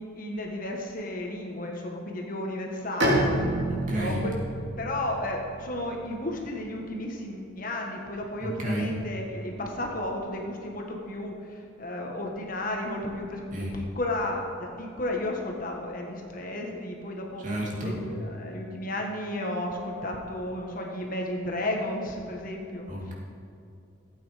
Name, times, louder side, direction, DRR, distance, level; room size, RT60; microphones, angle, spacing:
voice 1, 0.0-3.3 3.9-4.3 4.8-17.4 17.8-23.1, left 1 dB, 40° left, 1 dB, 1.5 m, -33 dB
Bowed string instrument, 3.0-6.6, right 1 dB, 60° right, 3.3 m, -29 dB
voice 2, 3.7-4.2 8.4-8.9 13.5-13.7 17.4-18.0 22.9-23.1, right 1 dB, 40° right, -3 dB, 2.6 m, -31 dB
15.5 x 8.8 x 5.1 m, 2.6 s
head